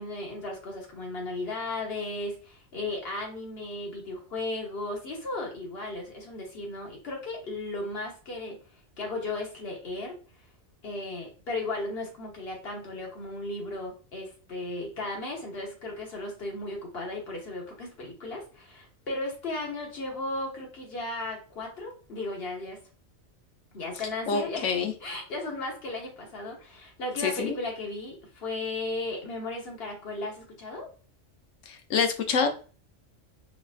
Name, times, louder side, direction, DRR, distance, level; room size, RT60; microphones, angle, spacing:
voice 1, 0.0-8.6 9.0-10.1 10.8-22.8 23.7-30.9, left 2 dB, 55° left, 0 dB, 1.2 m, -35 dB
voice 2, 24.3-24.9 27.2-27.6 31.7-32.5, left 5 dB, 75° left, 6 dB, 1.0 m, -26 dB
4.1 x 2.5 x 2.4 m, 0.37 s
omnidirectional pair, 1.3 m